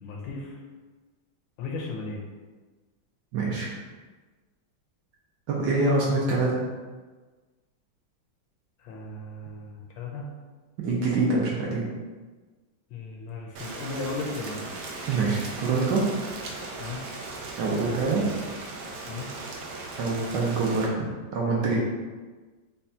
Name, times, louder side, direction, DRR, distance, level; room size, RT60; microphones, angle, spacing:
voice 1, 0.0-0.6 1.6-2.2 8.8-10.3 12.9-14.8 16.8-17.0 19.0-19.3, left 3 dB, 75° left, 0 dB, 1.3 m, -36 dB
voice 2, 3.3-3.7 5.5-6.6 10.8-11.9 15.1-16.1 17.6-18.3 20.0-21.8, right 3 dB, 70° right, -3 dB, 1.1 m, -25 dB
Rain, 13.6-20.9, right 3 dB, 85° right, 0.8 m, -38 dB
5.3 x 2.3 x 2.7 m, 1.3 s
omnidirectional pair, 2.2 m